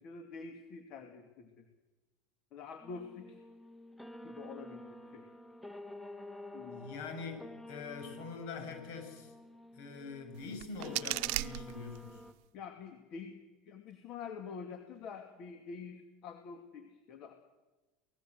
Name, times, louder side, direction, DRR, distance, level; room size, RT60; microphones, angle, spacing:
voice 1, 0.0-1.7 2.5-3.4 4.2-5.3 6.5-6.9 12.5-13.4 13.6-17.3, left 5 dB, 55° left, 6 dB, 2.5 m, -47 dB
sound 1, 2.8-12.3, left 1 dB, 5° left, 1.8 m, -50 dB
voice 2, 6.7-9.3 9.7-12.2, left 5 dB, 70° left, 5 dB, 7.6 m, -44 dB
sound 2, 10.3-12.3, right 23 dB, 70° right, 0.7 m, -38 dB
27.5 x 19.0 x 8.0 m, 1.2 s
supercardioid pair, 100°, 0 cm